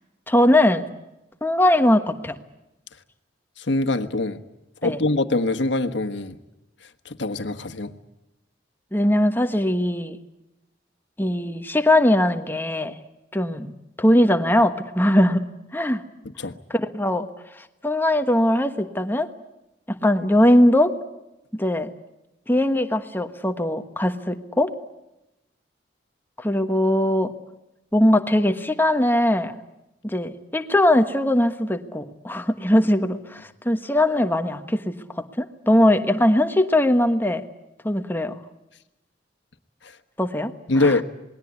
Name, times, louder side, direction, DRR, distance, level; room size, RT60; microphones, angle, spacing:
voice 1, 0.3-0.9 1.4-2.4 4.8-5.0 8.9-10.2 11.2-13.0 13.3-15.5 15.7-16.0 16.7-17.3 17.8-19.3 19.9-20.9 21.5-21.9 22.5-24.7 26.4-27.3 27.9-29.5 30.0-37.4 37.8-38.4 40.2-41.0, left 1 dB, 10° left, 8 dB, 1.3 m, -20 dB
voice 2, 3.6-4.4 4.8-6.4 7.0-7.9 16.4-16.6 40.7-41.0, left 2 dB, 75° left, 9 dB, 1.4 m, -23 dB
27.5 x 20.5 x 8.4 m, 0.94 s
head